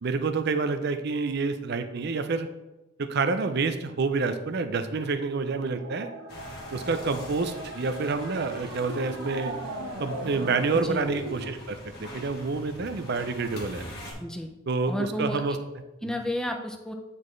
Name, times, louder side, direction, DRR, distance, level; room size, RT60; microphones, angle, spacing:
voice 1, 0.0-2.5 3.0-6.1 6.7-9.5 10.0-13.8 14.7-16.1, right 4 dB, 50° right, 9 dB, 0.5 m, -28 dB
sound 1, 5.0-11.5, right 1 dB, 85° right, 1.1 m, -38 dB
sound 2, 6.3-14.1, left 1 dB, 45° left, 1.4 m, -44 dB
voice 2, 10.7-11.1 14.2-14.5 14.9-15.6 16.0-16.9, left 1 dB, 5° left, 3 dB, 0.5 m, -32 dB
9.2 x 4.1 x 3.2 m, 1.0 s
head